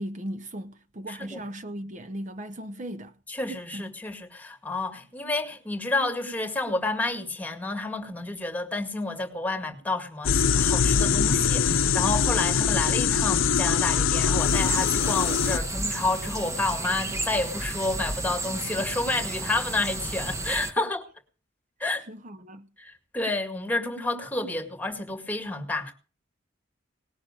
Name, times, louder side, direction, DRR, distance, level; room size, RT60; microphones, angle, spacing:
voice 1, 0.0-3.1 3.7-3.9 20.8-20.9 22.1-22.7, equal, 35° right, 0.7 m, -37 dB
voice 2, 1.1-1.4 3.3-21.0 21.8-22.0 22.8-25.9, left 2 dB, 10° left, 2.0 m, -30 dB
sound 1, 10.2-15.6, left 6 dB, 85° left, 0.7 m, -23 dB
sound 2, 14.4-20.7, right 2 dB, 15° right, 1.3 m, -33 dB
19.0 x 6.5 x 9.0 m
head